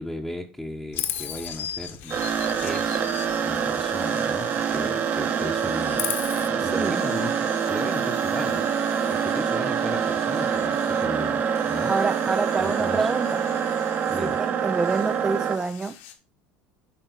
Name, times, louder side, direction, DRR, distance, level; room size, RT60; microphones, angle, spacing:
voice 1, 0.0-2.1 2.6-3.1 3.4-6.1 6.4-11.9 12.3-13.1 14.1-14.4, left 1 dB, ahead, 1.0 m, -36 dB
Chirp tweet, 0.9-5.0 5.2-6.5, left 9 dB, 45° left, 1.3 m, -35 dB
sound 1, 2.0-16.1, left 10 dB, 85° left, 2.5 m, -47 dB
sound 2, 2.1-15.6, right 7 dB, 40° right, 1.2 m, -25 dB
voice 2, 6.6-7.0 11.8-13.4 14.2-14.3 14.6-16.0, right 4 dB, 15° right, 0.5 m, -26 dB
9.2 x 5.8 x 4.0 m
supercardioid pair, 135°, 5 cm